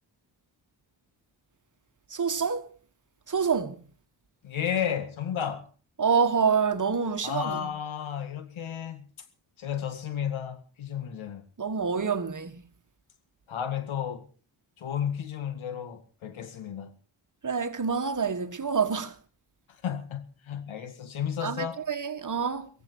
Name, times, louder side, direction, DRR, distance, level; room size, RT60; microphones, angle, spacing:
voice 1, 2.1-2.7 3.3-3.8 6.0-7.7 11.6-12.6 17.4-19.1 21.4-22.7, right 5 dB, 40° right, 1.7 m, -27 dB
voice 2, 4.4-5.7 7.2-9.1 9.6-11.4 13.5-14.3 14.8-16.9 19.8-21.8, left 8 dB, 80° left, 2.1 m, -33 dB
16.5 x 15.5 x 4.7 m
cardioid pair, 65°, 47 cm